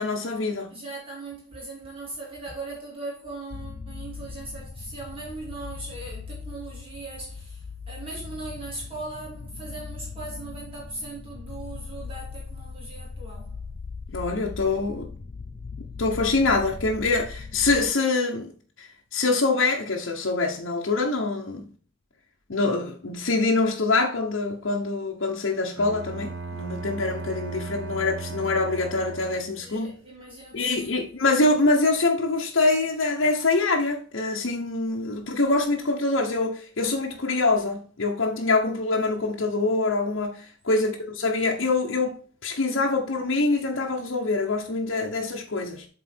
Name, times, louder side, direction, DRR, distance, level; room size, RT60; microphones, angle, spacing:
voice 1, 0.0-0.7 14.1-15.1 16.0-18.5 18.8-21.7 22.5-29.9 30.5-45.9, left 3 dB, 70° left, 0.9 m, -25 dB
voice 2, 0.7-13.5 29.6-31.0 40.7-40.9, right 2 dB, 30° right, 2.2 m, -39 dB
sound 1, 3.5-17.9, left 4 dB, 40° left, 0.5 m, -39 dB
Bowed string instrument, 25.8-29.7, right 3 dB, 75° right, 0.8 m, -36 dB
7.7 x 3.8 x 4.3 m
head